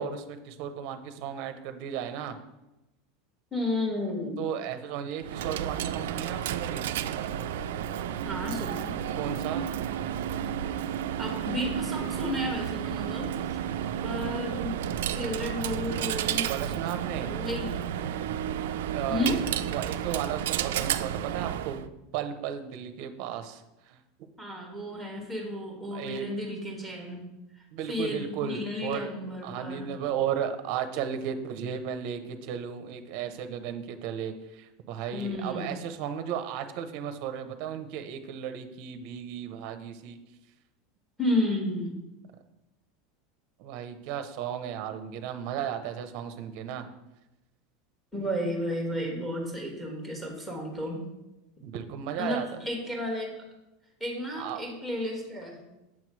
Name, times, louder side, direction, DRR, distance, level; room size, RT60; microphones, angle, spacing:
voice 1, 0.0-2.4 4.4-6.9 9.2-9.7 16.5-17.3 18.9-19.4 19.7-21.8 22.1-23.6 23.9-24.0 25.9-26.4 27.7-29.1 29.4-40.2 43.6-46.9 51.6-52.6 54.4-54.6, right 8 dB, 50° right, 8 dB, 0.6 m, -34 dB
voice 2, 3.5-4.4 8.2-9.0 11.2-13.6 14.0-16.5 17.2-17.7 19.1-19.4 24.4-27.2 27.9-29.9 35.1-35.7 41.2-41.9 48.1-51.0 52.2-53.3 54.0-55.6, left 1 dB, 5° left, 0 dB, 1.3 m, -32 dB
Coin (dropping), 5.2-21.9, right 10 dB, 90° right, 0.3 m, -32 dB
7.4 x 3.1 x 6.0 m, 0.96 s
supercardioid pair, 165°, 0 cm